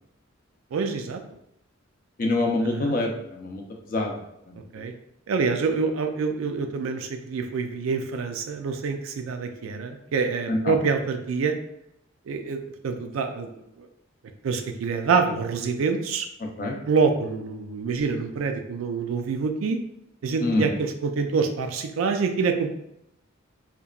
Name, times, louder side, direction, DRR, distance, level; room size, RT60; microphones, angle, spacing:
voice 1, 0.7-1.2 2.6-3.0 4.7-4.9 5.3-11.6 12.3-13.6 14.4-16.3 16.9-19.8 20.2-22.7, right 5 dB, 85° right, 6 dB, 0.4 m, -26 dB
voice 2, 2.2-3.6 3.9-4.1 4.5-4.6 10.5-10.7 16.6-16.8 20.4-20.7, left 2 dB, 45° left, 1 dB, 0.5 m, -25 dB
2.8 x 2.2 x 2.3 m, 0.80 s
head